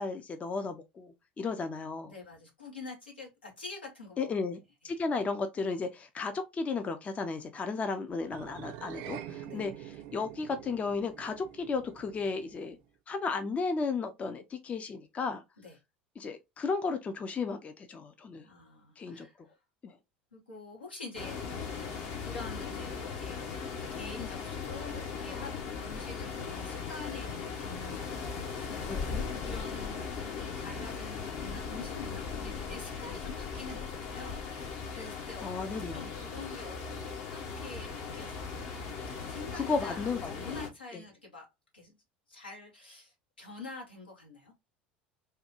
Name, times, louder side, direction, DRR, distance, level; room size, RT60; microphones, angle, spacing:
voice 1, 0.0-2.1 4.2-4.6 4.8-12.8 13.1-15.4 16.2-18.4 19.0-19.3 19.8-19.9 28.9-29.1 35.4-36.1 39.5-40.3, left 4 dB, 25° left, 0.4 m, -34 dB
voice 2, 2.0-4.4 4.8-5.0 9.4-9.6 15.6-15.8 18.4-19.3 20.3-21.6 22.2-23.4 23.9-25.5 25.8-30.0 30.6-35.5 35.9-36.8 37.3-38.3 38.8-41.5 41.7-42.0 42.3-44.5, left 3 dB, 85° left, 1.3 m, -46 dB
sound 1, 8.3-12.8, right 11 dB, 55° right, 0.4 m, -46 dB
sound 2, 21.1-40.7, left 5 dB, 50° left, 0.9 m, -38 dB
3.4 x 2.2 x 2.9 m
figure-of-eight pair, 70°, 5 cm